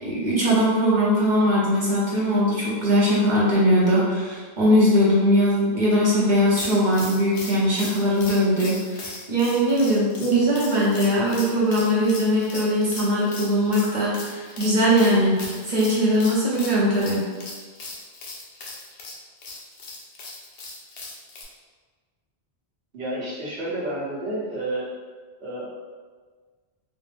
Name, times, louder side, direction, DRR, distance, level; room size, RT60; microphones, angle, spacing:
voice 1, 0.0-17.2, equal, 50° right, -7 dB, 0.9 m, -20 dB
sound 1, 6.5-21.4, left 2 dB, 90° left, 1.0 m, -38 dB
voice 2, 22.9-24.9 25.4-25.7, right 1 dB, 65° right, -8 dB, 1.2 m, -30 dB
4.2 x 2.1 x 3.3 m, 1.5 s
omnidirectional pair, 1.1 m